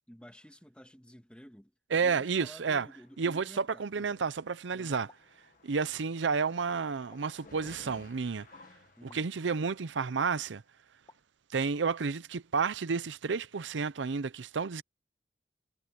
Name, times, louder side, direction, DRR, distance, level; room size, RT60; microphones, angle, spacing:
voice 1, 0.1-1.7 2.0-4.2 4.7-5.1 9.0-9.3, equal, 5° left, 1.9 m, -52 dB
voice 2, 1.9-2.9 3.2-5.1 5.6-8.5 9.0-10.6 11.5-14.8, right 5 dB, 85° right, 0.6 m, -31 dB
sound 1, 2.3-9.8, left 3 dB, 45° left, 1.6 m, -58 dB
sound 2, 5.1-5.4 7.1-7.4 9.1-9.3 11.1-11.4, left 2 dB, 20° left, 1.9 m, -59 dB
head